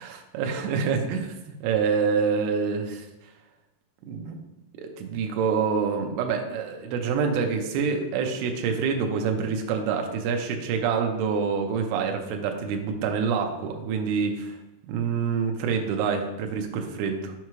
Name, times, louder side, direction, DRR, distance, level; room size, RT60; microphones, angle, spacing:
voice 1, 0.4-3.1 4.1-4.4 4.8-14.6 14.9-17.3, right 6 dB, 85° right, 4 dB, 2.6 m, -26 dB
6.5 x 4.8 x 3.1 m, 0.96 s
omnidirectional pair, 4.6 m